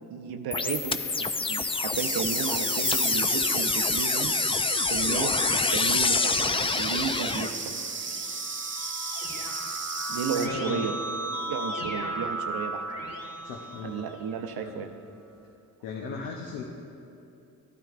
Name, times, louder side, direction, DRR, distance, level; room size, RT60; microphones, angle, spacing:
voice 1, 0.1-4.3 4.9-6.4 6.8-7.7 10.1-10.9 11.2-12.8 13.8-14.9, right 7 dB, 60° right, 5 dB, 0.7 m, -33 dB
sound 1, 0.5-7.5, left 4 dB, 15° left, 0.4 m, -26 dB
sound 2, 2.0-10.5, right 4 dB, 30° right, 0.8 m, -34 dB
Keyboard (musical), 7.8-14.5, right 1 dB, 50° left, 1.6 m, -35 dB
voice 2, 10.3-10.9 13.4-14.0 14.5-14.9 15.8-16.6, left 5 dB, 80° left, 1 dB, 0.8 m, -37 dB
13.5 x 9.0 x 2.5 m, 2.7 s
hypercardioid pair, 45°, 42 cm